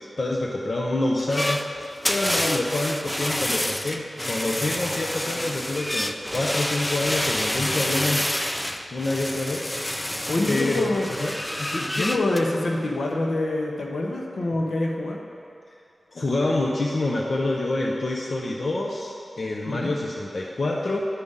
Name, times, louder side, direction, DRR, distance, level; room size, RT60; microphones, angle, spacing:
voice 1, 0.0-8.2 8.9-9.7 10.5-11.0 11.2-11.3 11.6-12.2 16.1-21.0, left 2 dB, 55° left, -2 dB, 0.7 m, -27 dB
sound 1, 1.2-12.4, left 1 dB, 15° left, 0.4 m, -28 dB
voice 2, 10.3-11.1 12.0-15.2 19.7-19.9, left 2 dB, 80° left, 0 dB, 0.9 m, -26 dB
11.5 x 5.4 x 3.6 m, 2.4 s
wide cardioid pair, 90°, 0 cm